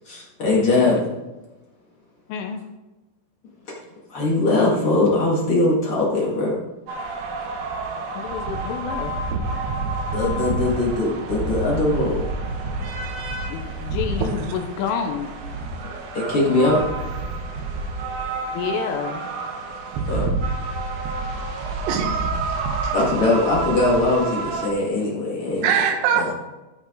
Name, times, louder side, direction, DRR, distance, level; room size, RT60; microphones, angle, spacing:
voice 1, 0.0-1.1 4.1-6.6 10.1-12.3 16.1-16.8 20.1-20.3 22.9-25.7 26.1-26.3, left 2 dB, 65° left, -5 dB, 1.3 m, -21 dB
voice 2, 2.3-2.6 8.1-9.1 13.5-15.3 18.5-19.3, left 7 dB, 80° left, 5 dB, 3.3 m, -29 dB
sound 1, 6.9-24.7, right 3 dB, 65° right, 2.7 m, -28 dB
voice 3, 14.2-14.5 19.9-20.1 21.9-22.3 22.8-22.9 25.6-26.3, right 7 dB, 90° right, 4 dB, 4.0 m, -23 dB
17.0 x 5.9 x 3.8 m, 1.1 s
omnidirectional pair, 6.0 m